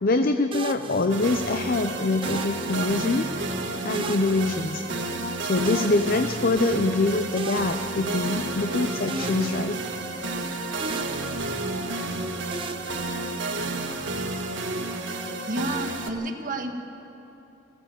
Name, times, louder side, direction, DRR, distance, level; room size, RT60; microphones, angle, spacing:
voice 1, 0.0-3.3 3.8-9.8, left 2 dB, 50° left, 8 dB, 0.6 m, -25 dB
sound 1, 0.5-1.7 2.2-3.4 3.9-5.3 5.6-6.8 7.4-8.7 9.1-10.5 10.8-12.0 12.5-13.9, right 4 dB, 30° right, 0.6 m, -38 dB
sound 2, 1.1-14.3, equal, 75° left, 2.4 m, -48 dB
sound 3, 1.1-16.1, right 2 dB, 70° right, 1.5 m, -31 dB
voice 2, 15.5-16.7, right 1 dB, 45° right, 5 dB, 1.5 m, -30 dB
20.5 x 15.0 x 8.5 m, 3.0 s
head